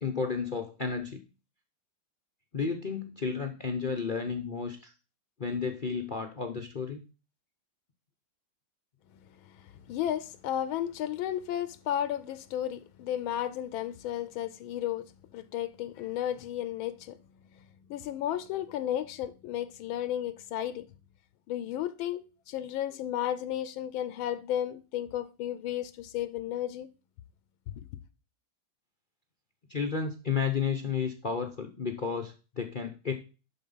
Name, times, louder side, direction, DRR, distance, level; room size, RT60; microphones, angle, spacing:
voice 1, 0.0-1.2 2.5-4.9 5.4-7.0 29.7-33.1, left 5 dB, 50° left, 0.6 m, -32 dB
voice 2, 9.5-17.2 17.9-20.9 21.5-26.9, left 11 dB, 85° left, 1.5 m, -33 dB
11.0 x 4.2 x 5.4 m
omnidirectional pair, 2.2 m